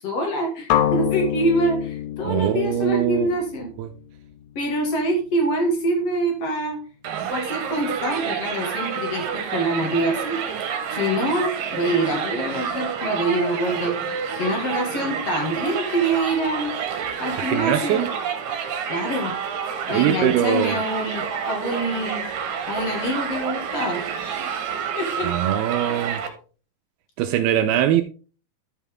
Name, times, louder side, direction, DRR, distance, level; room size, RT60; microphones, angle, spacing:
voice 1, 0.0-3.7 4.6-6.8 7.3-10.4 10.9-16.7 17.2-18.1 18.9-19.3 19.9-22.2 22.7-24.0 24.9-25.3, right 1 dB, 55° left, 1.9 m, -25 dB
sound 1, 0.7-4.7, left 10 dB, 80° left, 2.0 m, -27 dB
voice 2, 2.2-3.3 3.8-3.9 17.4-18.1 19.9-20.8 25.2-26.2 27.2-28.0, right 11 dB, 85° right, 2.3 m, -22 dB
Crowd, 7.0-26.3, right 7 dB, 65° right, 2.5 m, -29 dB
13.0 x 5.6 x 3.5 m
omnidirectional pair, 5.2 m